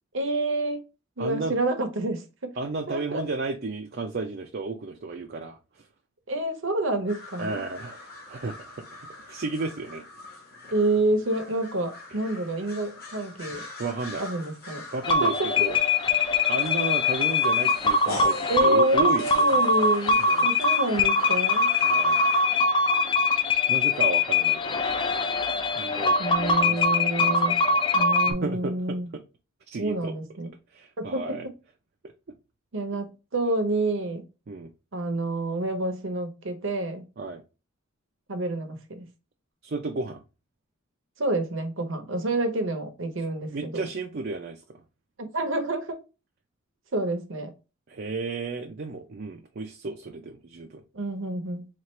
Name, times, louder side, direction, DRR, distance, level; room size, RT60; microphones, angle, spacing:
voice 1, 0.1-0.8 1.2-2.5 2.9-3.2 6.3-7.6 10.7-13.6 14.2-14.8 15.2-15.5 18.5-21.7 26.2-27.6 27.9-29.1 29.8-30.5 31.0-31.4 32.7-34.2 34.9-37.0 38.3-39.1 41.2-43.8 45.2-46.0 46.9-47.5 50.9-51.7, right 1 dB, 65° right, 0.8 m, -28 dB
voice 2, 1.2-1.5 2.6-5.9 7.4-8.0 8.3-8.8 9.3-10.0 13.8-14.2 14.9-15.8 16.5-19.5 20.2-20.5 21.8-22.2 23.7-24.8 25.7-27.9 28.3-29.2 29.7-30.1 30.7-31.5 34.5-34.7 37.2-37.4 39.6-40.2 43.5-44.8 47.9-50.8, right 3 dB, 45° right, 0.4 m, -33 dB
sound 1, 7.1-22.4, left 2 dB, 45° left, 1.4 m, -42 dB
sound 2, 15.0-28.3, left 3 dB, 25° left, 0.5 m, -23 dB
4.2 x 2.4 x 3.1 m
head